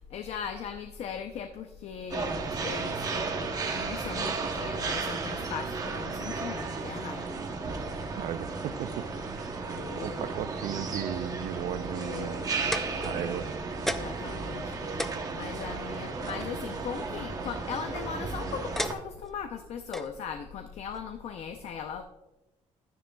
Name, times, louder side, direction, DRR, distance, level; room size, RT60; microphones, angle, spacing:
voice 1, 0.0-2.4 2.6-7.4 9.7-10.3 12.0-12.5 13.0-13.2 13.8-22.0, left 7 dB, 60° left, 6 dB, 0.6 m, -39 dB
sound 1, 2.1-18.9, right 4 dB, 30° right, 0.9 m, -34 dB
voice 2, 8.2-9.1 9.4-9.5 10.0-12.5 13.0-13.5, right 10 dB, 80° right, 13 dB, 0.5 m, -35 dB
sound 2, 12.7-13.5 13.9-14.3 14.6-14.7 15.0-16.5 17.6-18.0 18.8-19.4 19.9-20.1 20.9-21.1, left 1 dB, 5° left, 0.4 m, -35 dB
11.0 x 10.0 x 2.3 m, 1.0 s
cardioid pair, 155°, 12 cm